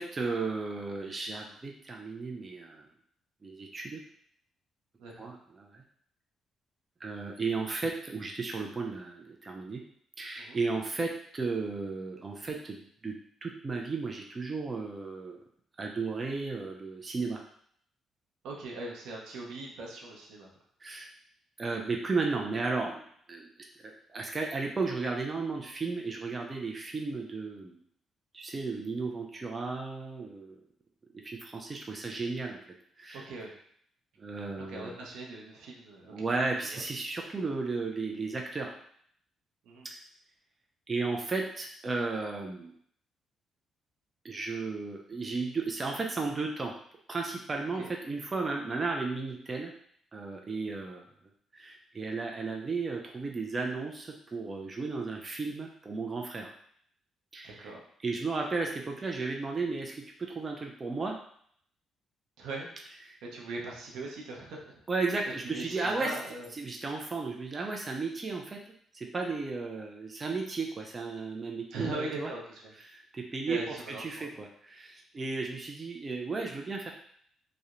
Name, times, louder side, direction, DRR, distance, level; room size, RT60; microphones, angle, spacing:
voice 1, 0.0-2.9 3.4-4.0 5.2-5.8 7.0-9.8 10.2-13.1 13.4-15.4 15.8-17.4 20.8-21.1 21.6-23.0 23.3-23.5 23.8-27.8 28.3-30.6 31.2-32.6 33.0-33.2 34.2-35.1 36.1-38.7 40.9-42.7 44.2-46.7 47.1-49.7 50.1-51.1 51.5-56.5 57.3-57.7 58.0-60.0 60.4-61.2 63.1-63.2 64.9-66.1 66.5-68.6 68.9-72.3 72.9-73.6 74.0-76.9, right 3 dB, 30° right, 1 dB, 0.3 m, -34 dB
voice 2, 5.0-5.3 10.4-10.6 18.4-20.5 33.1-33.5 34.5-36.3 36.6-36.8 39.6-39.9 47.8-47.9 57.4-57.8 62.4-62.7 63.3-64.8 65.4-66.5 71.7-72.7 73.5-74.4 75.1-75.3, right 2 dB, 85° right, -1 dB, 0.6 m, -40 dB
2.8 x 2.0 x 2.4 m, 0.64 s
cardioid pair, 90°, 0 cm